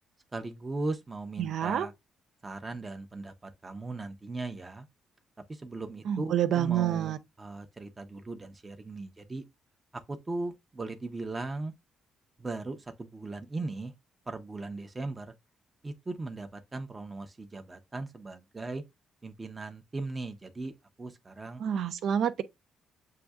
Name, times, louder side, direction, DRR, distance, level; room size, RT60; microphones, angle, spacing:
voice 1, 0.3-1.9 2.4-4.9 5.5-9.4 9.9-11.7 12.4-13.9 14.3-15.3 15.8-18.8 19.2-20.7 21.0-21.6, right 2 dB, 25° right, 0.7 m, -38 dB
voice 2, 1.4-1.9 6.0-7.2 21.6-22.4, right 10 dB, 70° right, 0.5 m, -28 dB
7.5 x 2.7 x 2.3 m
cardioid pair, 90°, 0 cm